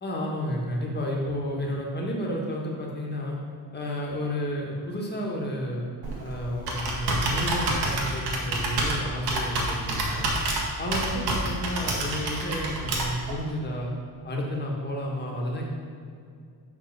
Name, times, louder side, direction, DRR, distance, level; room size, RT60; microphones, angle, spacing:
voice 1, 0.0-3.4 3.7-5.8 6.2-10.3 10.8-13.9 14.2-15.7, equal, 25° left, -1 dB, 1.5 m, -31 dB
Computer keyboard, 6.0-13.3, right 2 dB, 80° right, 1.7 m, -28 dB
6.8 x 5.2 x 6.0 m, 2.3 s
cardioid pair, 145°, 38 cm